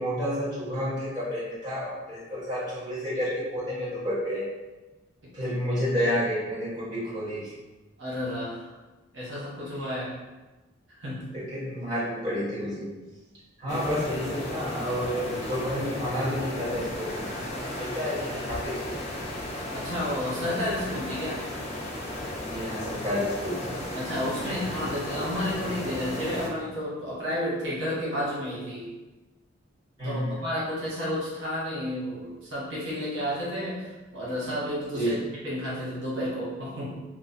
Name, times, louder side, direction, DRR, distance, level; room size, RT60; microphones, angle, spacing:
voice 1, 0.0-4.4 5.3-7.5 11.3-12.9 13.6-19.0 22.5-23.8 30.0-30.3 34.9-35.1, equal, 20° right, -11 dB, 1.5 m, -30 dB
voice 2, 8.0-8.7 9.1-10.1 11.0-11.3 19.7-21.4 23.9-28.9 30.0-35.2 35.4-37.0, left 1 dB, 80° right, -7 dB, 1.1 m, -31 dB
sound 1, 13.7-26.5, left 1 dB, 35° left, 0.5 m, -35 dB
3.0 x 2.0 x 3.9 m, 1.1 s
head